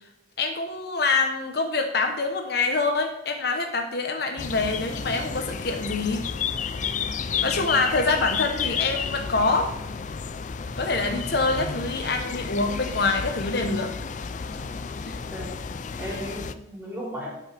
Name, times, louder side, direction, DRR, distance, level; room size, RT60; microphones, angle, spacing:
voice 1, 0.4-6.2 7.4-9.7 10.8-13.9 15.1-15.2, left 3 dB, 60° left, 5 dB, 0.9 m, -25 dB
sound 1, 4.4-16.5, left 6 dB, 45° left, 0.4 m, -32 dB
voice 2, 14.5-14.9 15.3-15.6 16.0-17.3, equal, 10° right, -5 dB, 3.3 m, -36 dB
12.5 x 5.7 x 3.4 m, 0.87 s
head